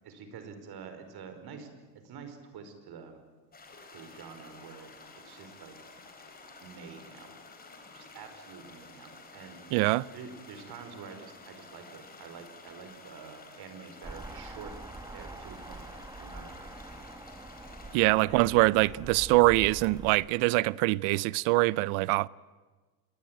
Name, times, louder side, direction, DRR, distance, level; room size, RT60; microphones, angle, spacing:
voice 1, 0.0-1.7 1.9-3.2 3.9-5.8 6.6-7.4 7.9-9.7 10.1-14.7 15.1-15.8 16.2-16.5 18.0-18.5, right 6 dB, 50° right, 5.2 m, -47 dB
sound 1, 3.5-18.0, left 3 dB, 20° left, 4.6 m, -51 dB
voice 2, 9.7-10.1 17.9-22.3, right 21 dB, 90° right, 0.8 m, -24 dB
sound 2, 14.0-20.3, right 2 dB, 10° right, 1.1 m, -45 dB
27.5 x 22.5 x 9.1 m
cardioid pair, 145°, 47 cm